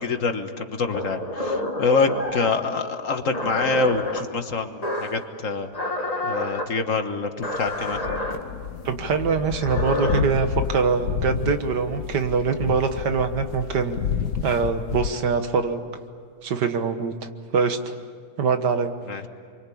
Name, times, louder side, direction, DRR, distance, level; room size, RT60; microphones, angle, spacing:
voice 1, 0.0-5.7 6.2-8.0 19.1-19.3, left 4 dB, 50° left, 6 dB, 1.6 m, -25 dB
sound 1, 0.9-2.6 3.3-4.2 4.8-5.2 5.7-6.7 7.4-8.4 9.4-10.2, left 2 dB, 25° left, 2.0 m, -28 dB
sound 2, 7.6-15.1, left 8 dB, 75° left, 1.5 m, -30 dB
voice 2, 8.9-14.0 14.4-15.8 16.4-18.0 18.4-18.9, right 5 dB, 80° right, 8 dB, 2.0 m, -23 dB
27.0 x 24.5 x 8.6 m, 2.1 s
omnidirectional pair, 1.8 m